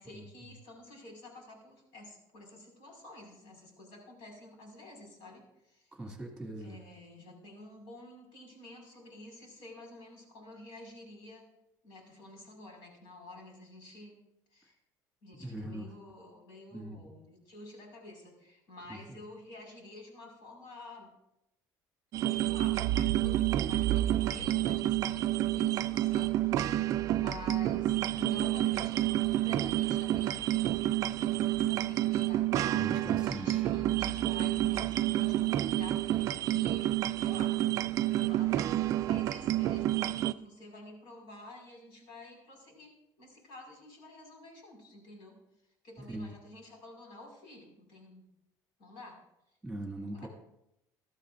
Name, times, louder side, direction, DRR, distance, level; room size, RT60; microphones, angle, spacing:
voice 1, 0.0-6.0 6.6-11.5 11.8-14.2 14.5-14.8 15.2-21.1 22.3-36.9 37.1-37.6 38.3-45.4 45.8-48.3 48.8-49.2 50.1-50.3, left 2 dB, 75° left, 1 dB, 5.4 m, -50 dB
voice 2, 5.9-6.8 15.4-15.9 16.7-17.0 32.7-33.6 46.1-46.3 49.6-50.3, right 1 dB, ahead, 0 dB, 2.1 m, -40 dB
sound 1, 22.1-40.3, right 14 dB, 45° right, 0.3 m, -29 dB
21.0 x 13.0 x 2.6 m, 0.84 s
cardioid pair, 175°, 8 cm